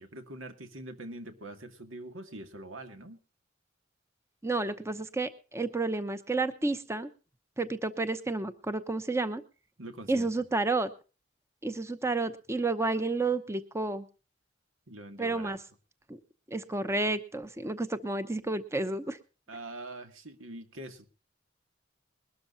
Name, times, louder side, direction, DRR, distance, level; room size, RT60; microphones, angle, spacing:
voice 1, 0.0-3.2 9.8-10.4 14.9-15.6 19.5-21.1, right 1 dB, 90° right, 7 dB, 2.1 m, -44 dB
voice 2, 4.4-7.1 7.6-9.4 10.1-10.9 11.6-14.0 15.2-15.6 16.1-16.2 16.5-19.2, right 3 dB, 15° right, 11 dB, 0.8 m, -31 dB
21.5 x 13.0 x 2.6 m, 0.34 s
head